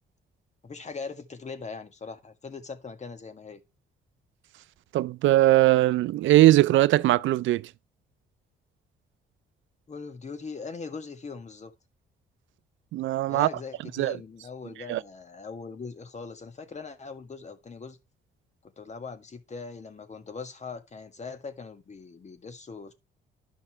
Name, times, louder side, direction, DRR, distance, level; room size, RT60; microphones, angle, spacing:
voice 1, 0.6-3.6 9.9-11.7 13.3-18.0 18.6-22.9, left 4 dB, 35° left, 1.6 m, -40 dB
voice 2, 4.9-7.7 12.9-13.5 14.0-14.2 14.9-15.0, right 15 dB, 75° right, 0.4 m, -20 dB
11.0 x 5.5 x 4.6 m
cardioid pair, 90°, 20 cm